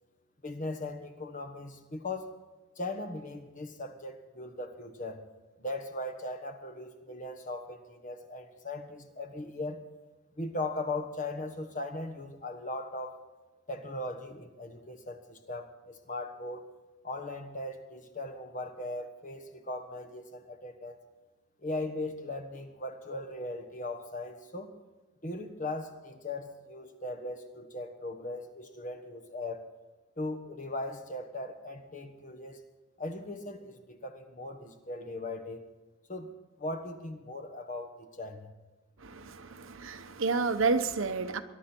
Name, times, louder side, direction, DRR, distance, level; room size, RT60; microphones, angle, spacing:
voice 1, 0.4-2.3 2.8-5.2 5.6-9.8 10.4-13.2 13.7-16.6 17.0-21.0 21.6-24.7 25.2-29.6 30.2-32.6 33.0-35.6 36.1-36.3 36.6-38.5, left 2 dB, 40° left, 7 dB, 1.3 m, -38 dB
voice 2, 39.0-41.4, right 4 dB, 70° right, 9 dB, 0.9 m, -30 dB
21.0 x 11.5 x 4.5 m, 1.2 s
head